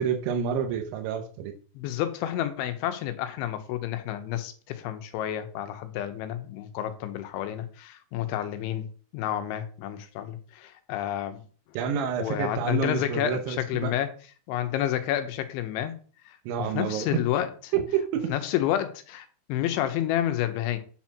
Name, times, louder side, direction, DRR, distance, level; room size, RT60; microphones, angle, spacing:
voice 1, 0.0-1.5 11.7-13.9 16.5-17.2 17.7-18.3, right 8 dB, 80° right, 3.4 m, -28 dB
voice 2, 1.7-8.9 9.1-11.4 12.2-14.1 14.5-16.0 16.3-17.7 18.3-20.8, left 12 dB, 90° left, 3.4 m, -30 dB
9.5 x 4.5 x 5.9 m
omnidirectional pair, 5.2 m